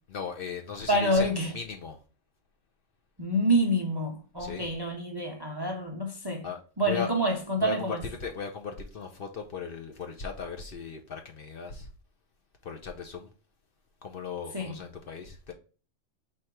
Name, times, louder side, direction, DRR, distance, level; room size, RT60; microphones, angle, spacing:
voice 1, 0.1-2.0 4.4-4.7 6.4-7.1 7.6-11.9 12.6-13.3 14.0-15.5, left 6 dB, 60° left, 0.7 m, -37 dB
voice 2, 0.9-1.5 3.2-6.5 6.8-8.0 14.5-14.7, right 1 dB, 30° right, 0.5 m, -27 dB
4.3 x 2.5 x 4.4 m
omnidirectional pair, 1.3 m